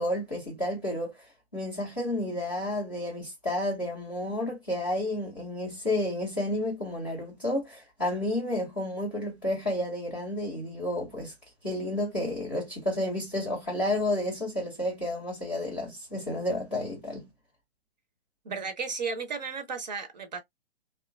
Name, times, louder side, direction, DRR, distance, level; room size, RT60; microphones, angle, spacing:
voice 1, 0.0-11.3 11.6-17.3, left 1 dB, 5° left, 0.3 m, -31 dB
voice 2, 18.4-20.4, right 5 dB, 45° right, 0.6 m, -34 dB
2.9 x 2.3 x 2.2 m
figure-of-eight pair, 125°, 32 cm